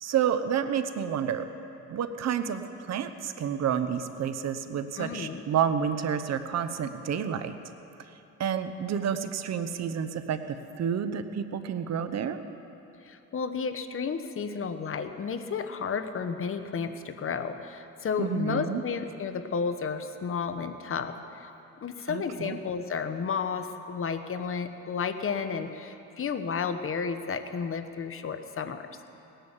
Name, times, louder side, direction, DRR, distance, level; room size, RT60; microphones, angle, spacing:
voice 1, 0.0-1.4 1.9-7.5 8.4-12.4 18.2-18.8 22.1-22.6, right 8 dB, 60° right, 10 dB, 1.0 m, -29 dB
voice 2, 5.0-5.4 13.0-21.5 21.8-28.9, left 5 dB, 45° left, 9 dB, 1.0 m, -32 dB
17.5 x 10.5 x 7.3 m, 2.9 s
cardioid pair, 90°, 30 cm